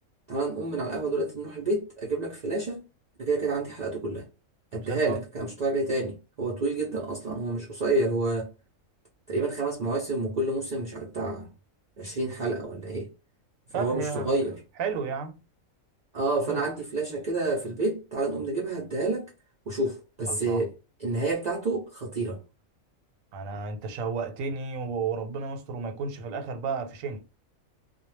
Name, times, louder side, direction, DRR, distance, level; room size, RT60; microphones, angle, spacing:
voice 1, 0.3-2.8 3.2-4.3 4.7-8.5 9.3-11.5 12.0-13.1 13.7-14.6 16.1-19.3 19.7-20.7 21.0-22.4, right 2 dB, 60° right, 0.4 m, -29 dB
voice 2, 4.7-5.2 13.7-14.4 14.8-15.4 16.5-16.6 20.3-20.7 23.3-27.2, right 5 dB, 90° right, 1.0 m, -32 dB
2.2 x 2.1 x 3.1 m
omnidirectional pair, 1.4 m